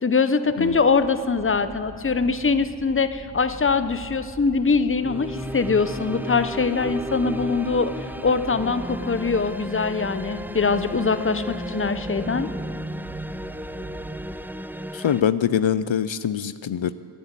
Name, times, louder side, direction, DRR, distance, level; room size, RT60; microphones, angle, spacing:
voice 1, 0.0-12.5, left 4 dB, 25° left, 11 dB, 0.7 m, -23 dB
sound 1, 0.6-14.8, right 1 dB, 50° right, 2.1 m, -43 dB
sound 2, 4.9-15.2, right 1 dB, 5° right, 0.3 m, -34 dB
voice 2, 14.9-16.9, left 8 dB, 75° left, 14 dB, 0.5 m, -23 dB
18.0 x 9.9 x 7.3 m, 2.4 s
wide cardioid pair, 45°, 46 cm